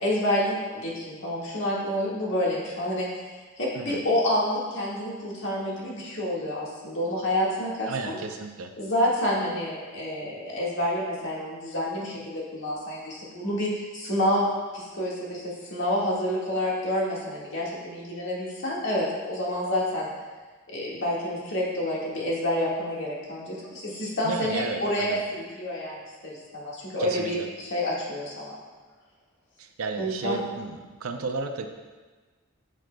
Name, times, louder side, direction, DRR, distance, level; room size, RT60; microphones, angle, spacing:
voice 1, 0.0-3.3 3.6-8.2 8.8-20.1 20.7-26.0 26.2-28.6 30.0-30.4, left 1 dB, 60° left, -5 dB, 1.7 m, -28 dB
voice 2, 7.9-8.7 24.2-25.2 27.0-27.5 29.6-31.7, right 4 dB, 75° right, 6 dB, 0.6 m, -33 dB
9.0 x 6.3 x 2.2 m, 1.3 s
head